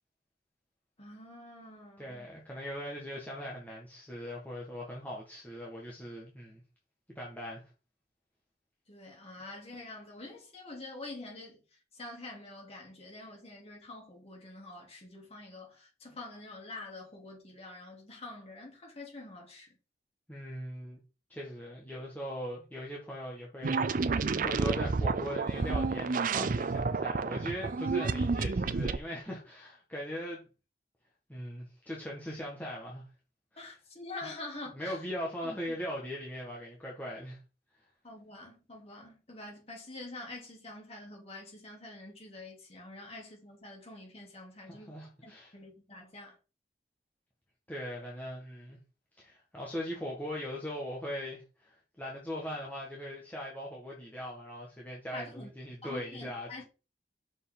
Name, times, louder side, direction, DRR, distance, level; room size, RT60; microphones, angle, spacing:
voice 1, 1.0-2.3 8.9-19.7 33.6-35.0 35.4-35.5 38.0-46.4 55.1-55.5 55.8-56.6, left 2 dB, 35° left, 2.8 m, -46 dB
voice 2, 2.0-6.6 7.1-7.7 20.3-21.0 21.3-30.5 31.3-33.1 34.7-37.4 44.7-45.5 47.7-48.8 49.2-56.6, equal, 10° left, 1.5 m, -40 dB
sound 1, 23.6-29.0, right 4 dB, 50° right, 0.5 m, -30 dB
6.4 x 5.2 x 3.8 m
head